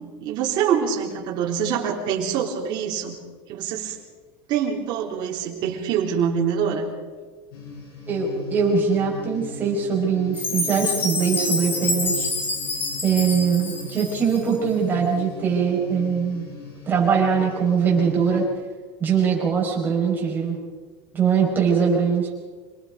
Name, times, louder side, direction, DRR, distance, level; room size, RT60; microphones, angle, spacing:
voice 1, 0.0-3.1 3.5-4.0 4.5-6.9, right 7 dB, 40° right, -3 dB, 3.8 m, -25 dB
sound 1, 7.5-18.5, left 3 dB, 85° left, 6.5 m, -38 dB
voice 2, 8.1-12.3 13.0-16.5 16.9-18.5 19.0-20.6 21.1-22.3, right 6 dB, 15° right, -3 dB, 5.8 m, -22 dB
Chime, 10.3-14.5, left 2 dB, 15° left, 2.6 m, -27 dB
27.0 x 19.5 x 5.3 m, 1.4 s
supercardioid pair, 170°, 12 cm